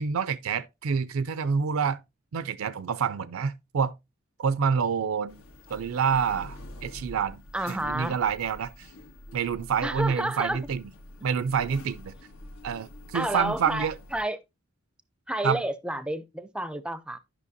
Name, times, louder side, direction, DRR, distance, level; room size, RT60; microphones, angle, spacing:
voice 1, 0.0-2.0 2.3-3.9 4.4-5.4 5.7-8.9 9.3-10.8 11.2-12.1 12.6-13.9 15.4-15.6, right 6 dB, 75° right, 0.4 m, -27 dB
sound 1, 5.3-14.2, left 1 dB, 90° left, 1.5 m, -46 dB
voice 2, 7.5-8.2 9.8-10.6 13.1-14.4 15.3-17.2, right 1 dB, 5° right, 0.4 m, -30 dB
11.0 x 5.7 x 2.6 m
head